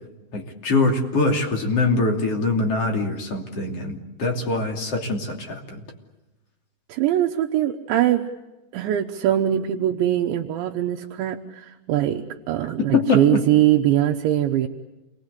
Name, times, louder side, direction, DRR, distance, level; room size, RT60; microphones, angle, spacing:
voice 1, 0.3-5.8 12.8-13.4, left 3 dB, 35° left, 2 dB, 3.3 m, -23 dB
voice 2, 6.9-8.3 8.7-14.7, right 12 dB, 75° right, 3 dB, 3.3 m, -22 dB
28.5 x 22.5 x 8.2 m, 1.0 s
omnidirectional pair, 5.3 m